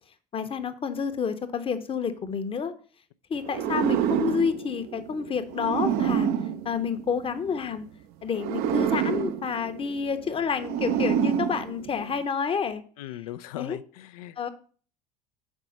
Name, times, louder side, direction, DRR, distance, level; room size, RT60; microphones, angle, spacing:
voice 1, 0.3-2.7 3.3-6.3 6.6-7.9 8.2-12.8 13.6-13.8 14.4-14.5, left 6 dB, 25° left, 11 dB, 0.8 m, -29 dB
sound 1, 3.4-7.6 8.3-12.2, right 9 dB, 50° right, 0.5 m, -28 dB
voice 2, 13.0-14.4, left 14 dB, 65° left, 15 dB, 0.4 m, -39 dB
5.3 x 4.8 x 5.8 m, 0.43 s
figure-of-eight pair, 65°, 21 cm